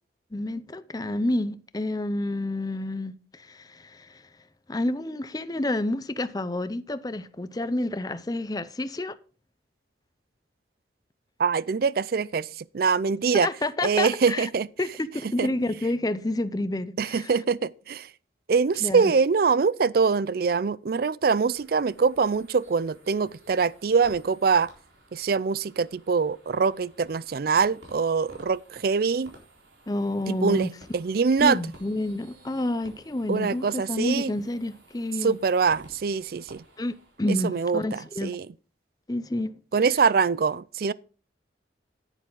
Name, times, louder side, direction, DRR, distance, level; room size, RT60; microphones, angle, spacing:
voice 1, 0.3-4.2 4.7-9.2 13.3-14.5 14.8-17.3 18.8-19.1 29.9-30.7 31.4-35.4 36.8-38.4 39.1-39.5, left 1 dB, 20° left, 0.5 m, -29 dB
voice 2, 11.4-12.5 12.7-13.5 13.8-14.7 15.4-15.5 17.0-18.1 18.5-24.7 25.1-29.3 30.3-31.6 33.3-34.3 35.2-36.6 37.4-38.5 39.7-40.9, right 5 dB, 55° right, 0.4 m, -24 dB
sound 1, 21.3-37.3, right 1 dB, 85° right, 4.1 m, -54 dB
10.0 x 9.9 x 3.8 m
head